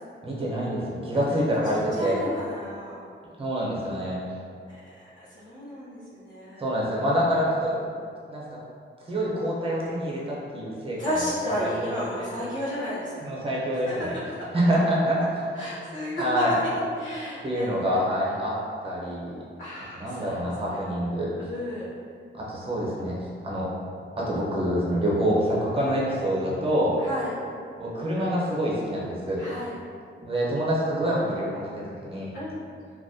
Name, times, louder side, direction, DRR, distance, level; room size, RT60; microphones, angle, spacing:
voice 1, 0.2-2.2 3.4-4.2 6.6-7.9 8.3-8.6 9.1-12.3 13.2-14.1 14.5-15.2 15.8-15.9 16.2-16.5 17.4-18.6 18.8-19.4 20.0-21.3 22.3-23.7 24.2-27.0 27.8-29.4 30.2-32.3, equal, 30° right, -5 dB, 0.6 m, -26 dB
voice 2, 1.6-3.0 5.3-6.6 11.0-13.1 13.9-14.1 15.5-18.0 19.6-20.9 21.4-21.9 27.0-27.3 29.4-29.7 32.3-32.7, equal, 75° left, -12 dB, 0.8 m, -33 dB
2.2 x 2.1 x 2.6 m, 2.3 s
wide cardioid pair, 130°, 20 cm